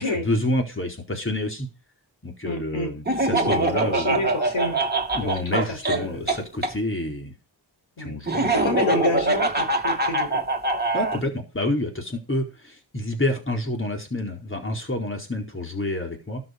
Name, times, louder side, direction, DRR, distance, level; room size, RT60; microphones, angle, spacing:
voice 1, 0.0-1.7 2.2-4.2 5.1-7.3 8.0-8.5 10.9-16.4, left 1 dB, 25° left, 2 dB, 4.4 m, -28 dB
voice 2, 2.4-2.9 3.3-4.8 5.2-6.2 8.0-8.2 8.5-10.5, left 2 dB, 85° left, 5 dB, 4.6 m, -29 dB
Laughter, 3.1-6.7 8.3-11.2, right 2 dB, 20° right, 2.7 m, -23 dB
13.0 x 7.0 x 6.6 m, 0.31 s
wide cardioid pair, 75°, 45 cm